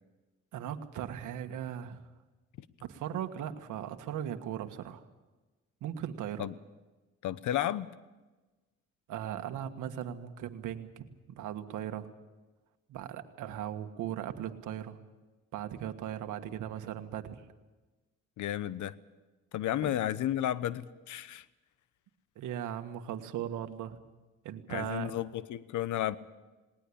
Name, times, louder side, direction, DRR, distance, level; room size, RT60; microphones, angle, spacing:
voice 1, 0.5-2.0 2.8-5.0 5.8-6.5 9.1-12.1 12.9-15.0 15.5-17.4 19.8-19.9 22.3-24.0 24.4-25.1, right 10 dB, 85° right, 1.6 m, -38 dB
voice 2, 7.2-7.9 18.4-18.9 19.5-21.4 24.7-26.2, left 12 dB, 75° left, 1.0 m, -32 dB
19.5 x 19.5 x 8.6 m
cardioid pair, 90°, 30 cm